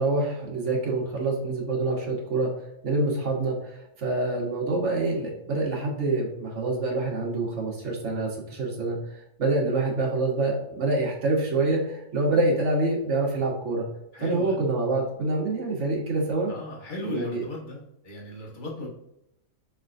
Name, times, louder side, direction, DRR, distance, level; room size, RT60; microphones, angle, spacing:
voice 1, 0.0-2.5 2.8-13.9 14.2-16.5 17.0-17.4, right 2 dB, 55° right, -2 dB, 1.6 m, -26 dB
voice 2, 14.1-14.7 16.5-18.9, left 1 dB, 35° left, -3 dB, 1.3 m, -36 dB
5.9 x 3.4 x 2.5 m, 0.84 s
omnidirectional pair, 1.5 m